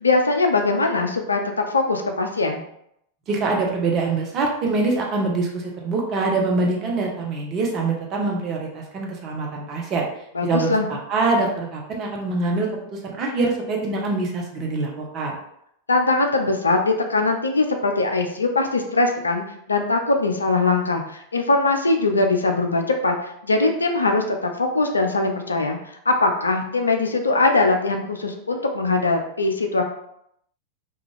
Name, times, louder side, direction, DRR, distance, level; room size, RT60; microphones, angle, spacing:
voice 1, 0.0-2.6 10.3-10.9 15.9-25.8 26.1-29.8, left 3 dB, 75° left, 4 dB, 0.3 m, -21 dB
voice 2, 3.3-10.0 10.4-15.4, right 3 dB, 35° right, -1 dB, 0.7 m, -24 dB
2.5 x 2.3 x 3.1 m, 0.74 s
figure-of-eight pair, 90°, 0 cm